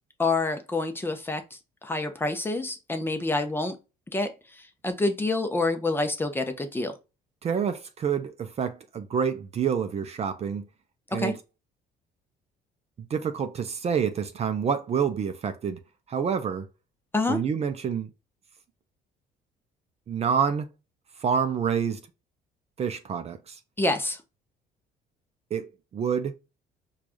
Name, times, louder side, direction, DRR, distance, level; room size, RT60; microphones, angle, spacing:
voice 1, 0.2-1.4 1.8-3.8 4.1-6.9 11.1-11.3 17.1-17.4 23.8-24.2, left 2 dB, 15° left, 0.6 m, -27 dB
voice 2, 7.4-10.6 11.1-11.4 13.0-15.8 16.1-16.7 17.3-18.1 20.1-20.7 21.2-22.0 22.8-23.6 25.5-26.4, right 7 dB, 40° right, 0.5 m, -28 dB
4.7 x 2.4 x 2.6 m
cardioid pair, 110°, 17 cm